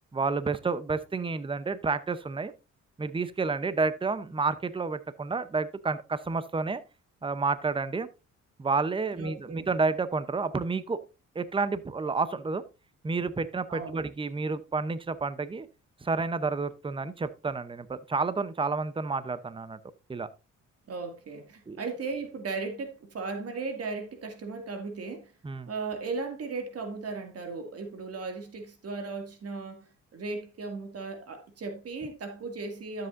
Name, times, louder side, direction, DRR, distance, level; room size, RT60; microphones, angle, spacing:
voice 1, 0.1-2.5 3.0-6.8 7.2-8.1 8.6-11.0 11.3-12.6 13.0-15.7 16.0-19.8 20.1-20.3 21.7-21.8 25.4-25.7, right 4 dB, 15° right, 0.8 m, -30 dB
voice 2, 9.1-9.7 13.7-14.0 20.9-25.3 25.7-33.1, right 4 dB, 50° right, 2.3 m, -36 dB
12.0 x 7.8 x 2.6 m
cardioid pair, 90°, 30 cm